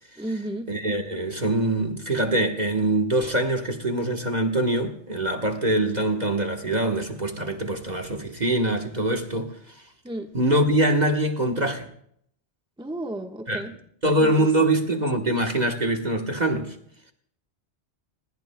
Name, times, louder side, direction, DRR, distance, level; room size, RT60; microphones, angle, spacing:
voice 1, 0.2-0.7 10.0-10.3 12.8-13.7 14.2-14.5, right 1 dB, 5° right, 1.2 m, -32 dB
voice 2, 0.7-9.8 10.3-11.9 13.5-13.6 14.0-16.8, right 1 dB, 40° right, 1.4 m, -24 dB
28.5 x 20.0 x 2.2 m
omnidirectional pair, 1.2 m